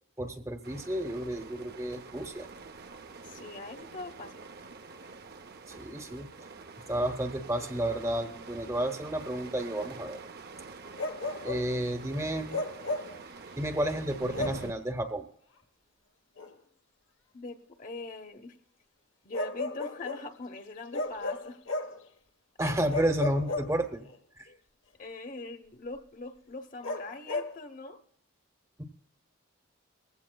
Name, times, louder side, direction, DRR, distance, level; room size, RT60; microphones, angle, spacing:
voice 1, 0.2-2.5 5.8-6.3 6.9-10.2 11.4-12.6 13.6-15.3 22.6-24.1, right 1 dB, 15° right, 7 dB, 0.9 m, -31 dB
sound 1, 0.6-14.7, right 4 dB, 50° right, 0.7 m, -46 dB
voice 2, 3.2-4.3 17.3-18.6 19.2-21.6 22.6-22.8 24.4-24.6 25.0-28.0, left 3 dB, 40° left, 6 dB, 1.0 m, -42 dB
Bark, 11.0-11.7 12.5-13.2 14.3-14.7 16.4-16.5 19.3-20.3 20.9-22.0 22.9-24.2 26.8-27.6, left 2 dB, 70° left, 1.2 m, -34 dB
20.0 x 15.5 x 2.3 m, 0.63 s
head